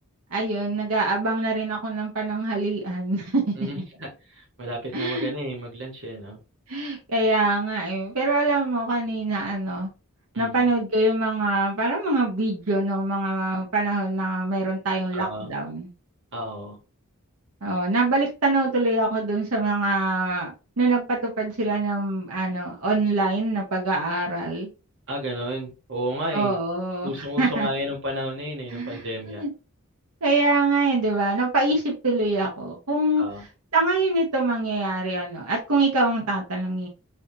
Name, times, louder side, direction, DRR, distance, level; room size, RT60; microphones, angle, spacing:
voice 1, 0.3-3.8 4.9-5.3 6.7-9.9 10.4-15.9 17.6-24.7 26.3-27.7 28.7-29.5 30.2-33.5 33.7-36.9, right 2 dB, 85° right, 1.0 m, -24 dB
voice 2, 3.6-4.1 4.6-6.4 10.3-10.6 15.1-15.5 16.3-16.7 25.1-26.6 27.0-29.4 33.2-33.4, equal, 55° right, 1.6 m, -32 dB
5.6 x 2.7 x 2.7 m
head